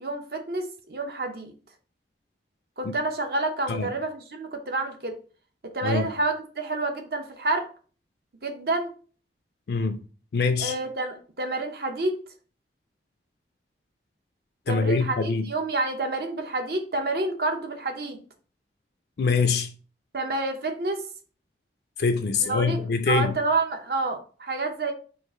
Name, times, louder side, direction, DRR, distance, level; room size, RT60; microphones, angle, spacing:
voice 1, 0.0-1.5 2.8-5.2 5.7-7.7 8.4-8.9 10.6-12.2 14.7-18.2 20.1-21.0 22.4-24.9, right 2 dB, 60° right, 0.8 m, -28 dB
voice 2, 9.7-10.0 10.3-10.7 14.7-15.5 19.2-19.7 22.0-23.3, left 4 dB, 65° left, 0.4 m, -24 dB
4.8 x 2.5 x 4.2 m
head